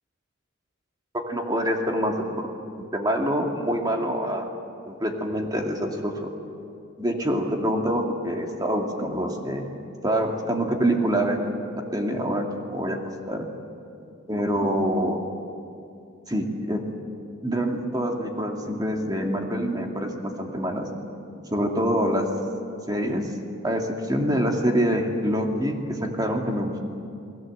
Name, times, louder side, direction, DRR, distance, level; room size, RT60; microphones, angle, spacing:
voice 1, 1.1-2.5 2.9-4.5 4.9-6.3 7.0-9.7 10.0-11.5 11.9-13.0 13.3-13.5 14.3-15.2 16.3-16.9 17.4-20.9 21.5-22.3 22.9-23.3 23.6-26.8, equal, 20° right, 2 dB, 2.4 m, -25 dB
29.5 x 19.5 x 7.9 m, 2.6 s
head